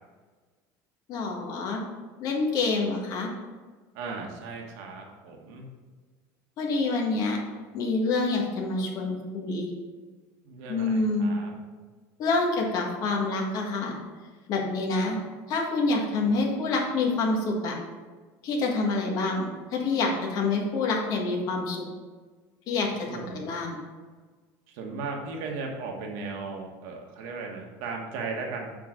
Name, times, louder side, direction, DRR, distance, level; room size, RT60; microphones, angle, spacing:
voice 1, 1.1-1.8 2.2-3.3 6.6-7.4 7.7-9.7 10.7-11.3 12.2-13.9 14.5-15.2 15.5-17.8 18.4-21.8 22.7-23.8, left 3 dB, 45° left, 0 dB, 1.5 m, -27 dB
voice 2, 3.9-5.6 10.4-11.6 15.1-15.2 16.2-16.4 23.1-23.5 24.7-28.7, right 4 dB, 70° right, 1 dB, 1.3 m, -37 dB
7.5 x 3.8 x 5.1 m, 1.4 s
cardioid pair, 150°, 9 cm